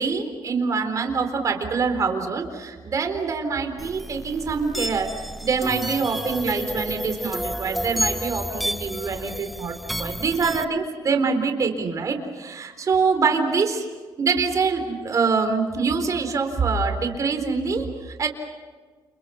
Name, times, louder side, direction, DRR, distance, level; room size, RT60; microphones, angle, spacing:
voice 1, 0.0-5.1 5.4-13.9 14.2-18.3, right 5 dB, 45° right, 6 dB, 4.0 m, -25 dB
sound 1, 3.8-10.6, equal, ahead, 0.8 m, -31 dB
30.0 x 29.5 x 5.8 m, 1.4 s
cardioid pair, 150°, 8 cm